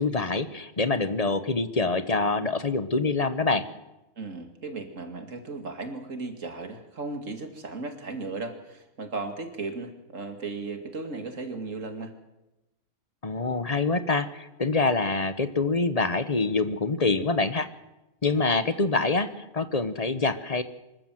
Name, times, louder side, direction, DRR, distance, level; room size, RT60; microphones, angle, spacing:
voice 1, 0.0-3.6 13.2-17.7 18.2-20.6, left 3 dB, 30° left, 11 dB, 1.1 m, -25 dB
voice 2, 4.2-12.1, right 3 dB, 75° right, 6 dB, 2.7 m, -36 dB
25.0 x 14.0 x 7.7 m, 0.98 s
omnidirectional pair, 1.3 m